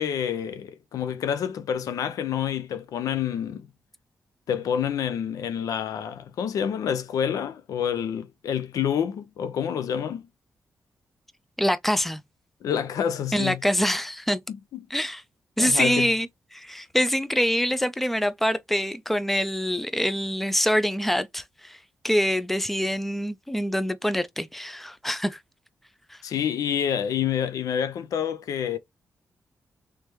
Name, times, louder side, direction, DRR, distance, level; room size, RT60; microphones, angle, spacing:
voice 1, 0.0-3.7 4.5-10.2 12.6-13.6 14.5-14.8 15.6-16.1 26.2-28.8, left 8 dB, 85° left, 0.5 m, -28 dB
voice 2, 11.6-12.2 13.3-14.4 14.9-15.2 15.6-21.8 22.0-25.4 26.1-26.2, equal, 5° left, 0.5 m, -25 dB
3.3 x 3.2 x 3.0 m
cardioid pair, 75°, 6 cm